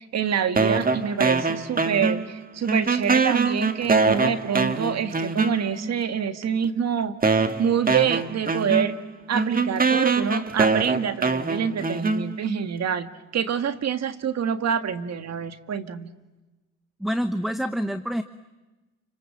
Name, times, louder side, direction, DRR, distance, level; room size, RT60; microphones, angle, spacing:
voice 1, 0.0-8.9 9.3-16.1, right 8 dB, 60° right, 10 dB, 1.8 m, -26 dB
sound 1, 0.6-2.4 2.7-5.9 6.6-6.7 7.2-12.6, right 4 dB, 30° right, 1.9 m, -23 dB
voice 2, 17.0-18.2, equal, ahead, 11 dB, 1.0 m, -26 dB
29.5 x 26.0 x 7.6 m, 1.1 s
cardioid pair, 90°, 30 cm